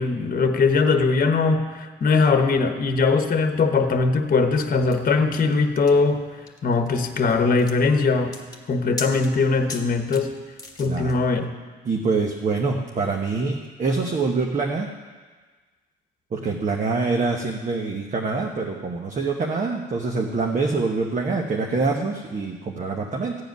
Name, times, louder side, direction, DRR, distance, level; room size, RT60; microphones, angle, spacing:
voice 1, 0.0-6.2 6.6-8.4 8.7-10.3 10.8-11.5, left 4 dB, 45° left, 6 dB, 1.1 m, -20 dB
sound 1, 4.9-11.2, left 3 dB, 20° left, 1.5 m, -39 dB
voice 2, 11.8-14.9 16.3-23.4, right 4 dB, 40° right, 1 dB, 1.1 m, -25 dB
14.5 x 4.9 x 9.4 m, 1.4 s
cardioid pair, 90°, 20 cm